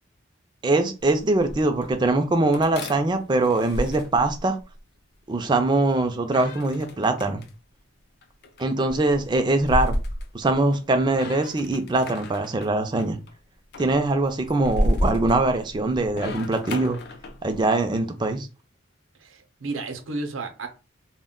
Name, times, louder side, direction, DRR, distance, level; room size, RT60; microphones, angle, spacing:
voice 1, 0.6-4.6 5.3-7.4 8.6-10.0 10.3-13.2 13.8-17.0 17.4-18.5, right 2 dB, 20° right, 6 dB, 0.4 m, -22 dB
sound 1, 1.0-1.9 2.5-4.8 6.3-7.5 8.2-10.9 11.1-12.7 13.0-13.3 13.7-17.6, equal, 55° left, 0.4 m, -31 dB
voice 2, 19.2-20.7, right 3 dB, 80° right, 6 dB, 0.6 m, -32 dB
2.2 x 2.1 x 3.6 m, 0.32 s
head